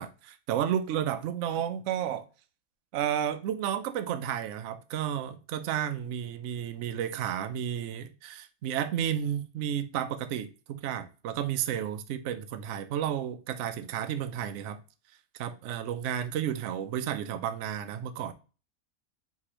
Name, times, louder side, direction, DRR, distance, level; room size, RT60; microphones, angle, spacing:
voice 1, 0.0-2.3 2.9-14.8 15.4-18.3, right 10 dB, 65° right, 0.8 m, -32 dB
4.9 x 3.4 x 2.8 m
omnidirectional pair, 1.5 m